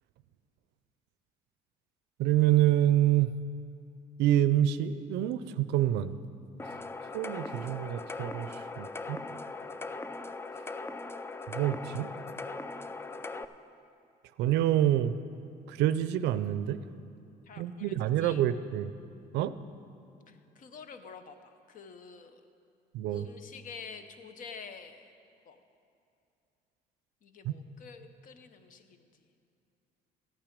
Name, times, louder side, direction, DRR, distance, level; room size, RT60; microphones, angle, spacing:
voice 1, 2.2-3.3 4.2-6.2 7.1-8.5 8.8-9.2 11.5-12.1 14.4-15.1 15.7-16.8 17.6-18.9 19.3-19.6 22.9-23.3 27.4-27.5, right 12 dB, 85° right, 14 dB, 0.5 m, -27 dB
sound 1, 6.6-13.4, left 3 dB, 15° left, 0.3 m, -40 dB
voice 2, 17.5-18.4 20.3-22.4 23.1-25.1 25.5-25.6 27.2-29.2, left 5 dB, 55° left, 9 dB, 0.8 m, -48 dB
14.0 x 9.0 x 5.1 m, 2.6 s
cardioid pair, 110°, 17 cm